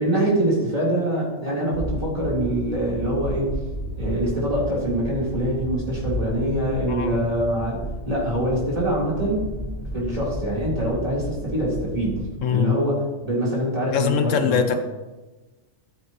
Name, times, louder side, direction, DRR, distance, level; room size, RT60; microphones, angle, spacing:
voice 1, 0.0-3.6 4.0-9.5 9.9-12.2 12.5-14.8, right 1 dB, 30° right, -6 dB, 4.0 m, -24 dB
sound 1, 1.7-12.3, equal, ahead, 4.0 m, -32 dB
voice 2, 6.9-7.2 12.4-12.7 13.9-14.8, left 7 dB, 80° left, 8 dB, 1.2 m, -22 dB
14.0 x 9.0 x 3.1 m, 1.2 s
omnidirectional pair, 1.3 m